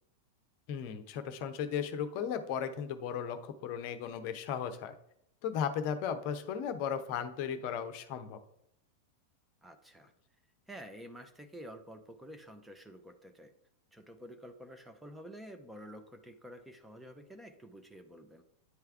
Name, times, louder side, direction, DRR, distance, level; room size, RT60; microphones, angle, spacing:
voice 1, 0.7-4.9 5.4-8.4, left 8 dB, 45° left, 9 dB, 0.7 m, -36 dB
voice 2, 9.6-10.1 10.7-13.5 13.9-18.4, equal, 5° right, 6 dB, 0.7 m, -50 dB
9.6 x 3.4 x 3.5 m, 0.74 s
figure-of-eight pair, 90°, 0 cm